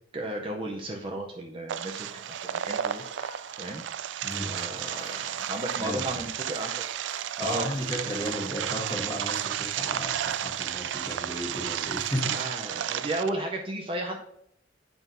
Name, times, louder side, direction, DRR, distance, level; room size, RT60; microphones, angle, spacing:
voice 1, 0.1-3.1 3.6-3.8 4.5-6.7 7.4-7.7 12.3-14.2, right 1 dB, 30° right, 2 dB, 0.6 m, -34 dB
sound 1, 1.7-13.3, right 10 dB, 80° right, 0.3 m, -32 dB
Applause / Crowd, 1.9-12.8, left 3 dB, 40° left, 0.8 m, -54 dB
voice 2, 4.2-4.6 5.8-6.2 7.4-12.4, equal, 20° left, -2 dB, 1.5 m, -34 dB
9.1 x 5.8 x 2.6 m, 0.74 s
head